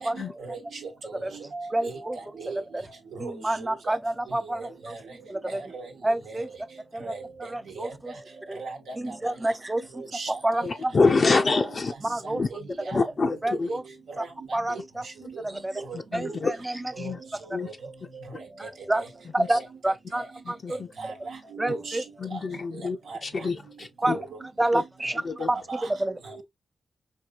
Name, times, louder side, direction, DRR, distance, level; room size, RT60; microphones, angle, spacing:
voice 1, 0.0-0.9 1.3-2.0 2.4-2.6 3.2-3.3 3.9-4.0 4.6-5.0 5.5-5.9 6.3-6.4 7.0-7.5 7.8-9.1 10.1-10.3 10.6-10.7 11.7-11.8 12.2-13.0 13.5-13.8 14.7-14.8 15.2-15.4 15.9-16.4 16.9-17.1 17.6-18.7 19.0-19.1 19.6-19.7 20.2-20.3 21.0-22.0 23.1-23.5 24.0-24.2 25.7-25.9, right 4 dB, 85° right, 1.0 m, -39 dB
voice 2, 1.7-2.2 2.7-2.9 3.2-5.0 5.3-5.6 6.0-6.5 6.9-7.1 7.4-8.1 8.5-8.6 9.0-10.9 11.5-11.6 12.1-12.4 13.4-13.8 14.2-14.3 14.5-15.8 16.1-17.1 18.6-19.0 19.3-20.8 21.6-22.0 24.0-24.2 24.6-25.2 25.5-26.2, right 1 dB, 20° right, 0.4 m, -29 dB
voice 3, 10.6-11.9 12.4-12.5 12.9-13.7 15.9-16.5 17.0-17.2 17.5-17.7 19.4-19.5 20.5-20.9 22.2-23.0 23.2-24.2 24.7-24.8 25.2-25.5, left 4 dB, 50° left, 0.5 m, -26 dB
4.4 x 2.7 x 2.4 m
cardioid pair, 65°, 0 cm